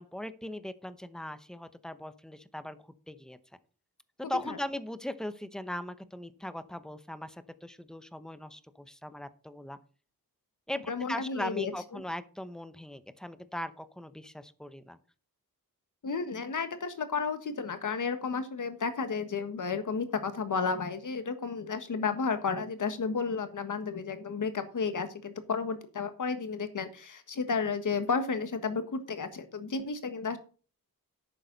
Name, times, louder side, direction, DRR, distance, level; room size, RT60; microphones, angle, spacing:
voice 1, 0.0-3.4 4.3-9.8 10.7-15.0, left 1 dB, ahead, 12 dB, 0.8 m, -39 dB
voice 2, 10.9-11.7 16.0-30.4, left 5 dB, 55° left, 9 dB, 1.5 m, -32 dB
11.0 x 8.8 x 4.0 m, 0.38 s
wide cardioid pair, 150°, 36 cm